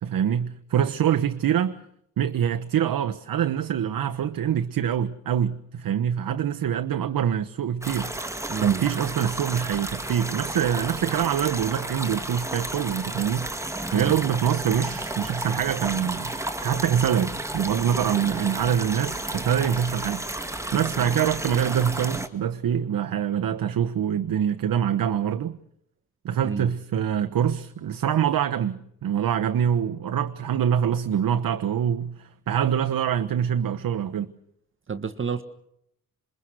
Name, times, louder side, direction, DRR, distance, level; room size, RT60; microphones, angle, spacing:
voice 1, 0.0-1.8 2.2-8.1 8.6-13.5 13.9-20.2 20.7-25.6 26.2-34.3, right 9 dB, 75° right, 1.3 m, -25 dB
sound 1, 7.8-22.3, right 1 dB, 10° right, 2.1 m, -32 dB
voice 2, 8.5-8.8 14.0-14.2 26.4-26.7 34.9-35.4, right 5 dB, 35° right, 1.4 m, -30 dB
27.5 x 23.0 x 6.4 m
wide cardioid pair, 150°, 34 cm